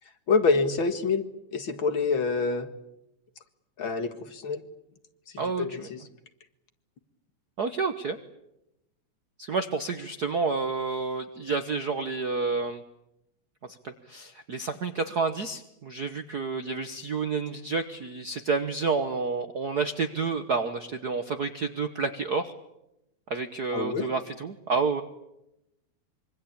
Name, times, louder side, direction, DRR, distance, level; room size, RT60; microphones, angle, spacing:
voice 1, 0.3-1.2 1.5-2.7 3.8-4.6 5.3-6.0 23.7-24.1, left 4 dB, 45° left, 9 dB, 2.2 m, -26 dB
voice 2, 5.4-5.9 7.6-8.2 9.4-12.8 13.8-22.5 23.3-25.0, right 4 dB, 55° right, 8 dB, 1.1 m, -29 dB
26.0 x 24.0 x 8.7 m, 0.87 s
omnidirectional pair, 3.3 m